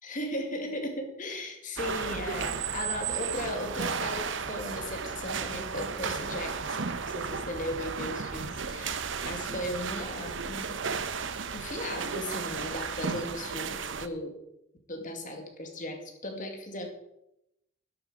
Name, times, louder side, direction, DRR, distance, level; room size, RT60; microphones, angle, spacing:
voice 1, 0.0-10.8 11.5-14.4 14.9-16.9, left 1 dB, 40° left, 4 dB, 2.2 m, -37 dB
sound 1, 1.8-14.1, right 5 dB, 65° right, 0.9 m, -34 dB
12.5 x 11.0 x 5.1 m, 0.85 s
head